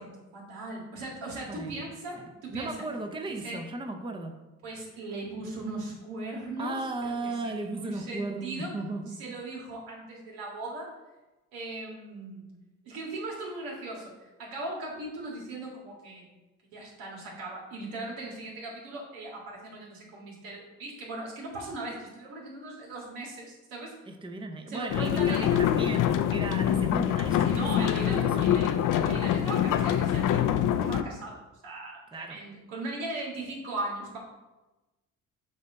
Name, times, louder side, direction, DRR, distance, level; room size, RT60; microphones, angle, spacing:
voice 1, 0.0-2.7 3.3-3.6 4.6-8.7 9.1-10.9 11.5-12.4 12.8-16.3 16.7-23.9 24.7-25.7 27.4-34.2, right 2 dB, 90° right, -3 dB, 1.8 m, -38 dB
voice 2, 1.5-1.8 2.2-4.4 6.6-9.4 24.1-28.5 32.1-32.4, right 2 dB, 15° right, 5 dB, 0.7 m, -36 dB
sound 1, 24.9-31.0, left 10 dB, 65° left, 0.5 m, -25 dB
6.6 x 2.9 x 5.3 m, 1.1 s
supercardioid pair, 65°, 35 cm